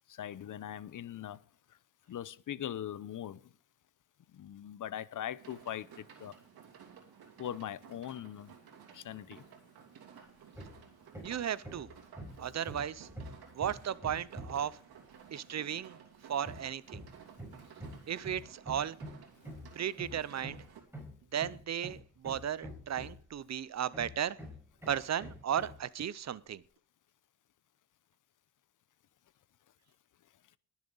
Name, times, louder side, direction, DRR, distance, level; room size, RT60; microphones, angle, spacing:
voice 1, 0.1-1.4 2.1-3.4 4.3-6.3 7.4-8.5 8.9-9.4, left 10 dB, 55° left, 0.7 m, -41 dB
sound 1, 5.4-20.8, right 7 dB, 75° right, 3.0 m, -55 dB
Hammer, 10.5-10.8 11.1-14.7 16.4-23.4 23.9-25.8, equal, 5° right, 5.1 m, -46 dB
voice 2, 11.2-11.9 12.4-13.1 13.5-14.8 15.3-16.0 16.3-17.0 18.1-19.0 19.7-20.6 21.3-24.4 24.9-26.6, right 9 dB, 45° right, 0.6 m, -35 dB
21.0 x 7.2 x 4.0 m
cardioid pair, 70°, 37 cm